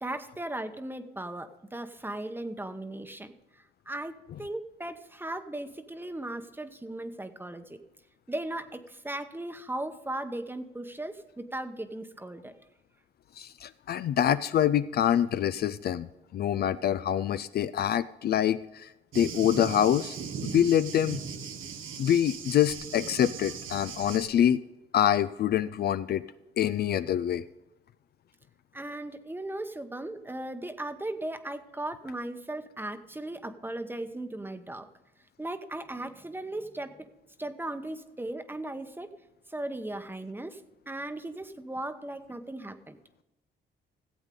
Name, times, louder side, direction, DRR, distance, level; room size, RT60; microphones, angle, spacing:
voice 1, 0.0-3.3 3.9-7.8 8.3-12.5 28.7-34.9 35.4-37.1 37.4-39.1 39.5-40.6 40.9-43.0, right 1 dB, 10° right, 9 dB, 0.9 m, -37 dB
voice 2, 13.4-16.1 16.3-18.9 19.1-20.1 20.4-21.2 22.0-24.6 24.9-26.2 26.6-27.4, left 10 dB, 55° left, 14 dB, 0.4 m, -25 dB
Thunder, 19.1-24.3, right 6 dB, 90° right, 1.2 m, -38 dB
15.5 x 8.1 x 3.8 m, 0.97 s
cardioid pair, 90°, 20 cm